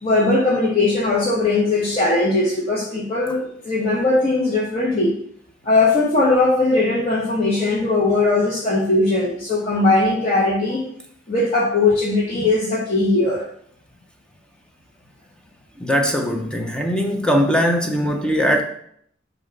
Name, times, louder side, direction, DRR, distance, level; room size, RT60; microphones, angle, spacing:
voice 1, 0.0-5.2 5.6-10.8 11.3-13.4, left 2 dB, 30° left, -7 dB, 1.2 m, -19 dB
voice 2, 15.8-18.6, equal, 5° left, 3 dB, 0.5 m, -20 dB
7.2 x 2.8 x 5.8 m, 0.66 s
head